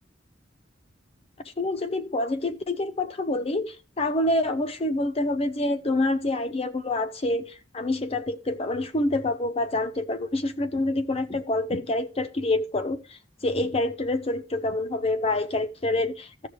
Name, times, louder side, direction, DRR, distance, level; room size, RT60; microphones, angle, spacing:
voice 1, 1.4-16.5, left 2 dB, 30° left, 0.6 m, -27 dB
15.0 x 6.3 x 3.3 m
head